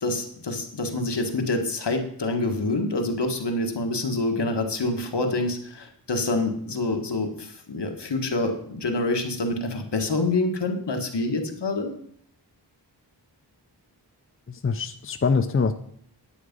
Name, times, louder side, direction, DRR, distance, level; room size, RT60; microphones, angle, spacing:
voice 1, 0.0-11.9, left 2 dB, 75° left, 4 dB, 1.7 m, -26 dB
voice 2, 14.5-15.7, left 5 dB, 30° left, 10 dB, 0.6 m, -24 dB
9.9 x 9.2 x 5.4 m, 0.65 s
wide cardioid pair, 75°, 42 cm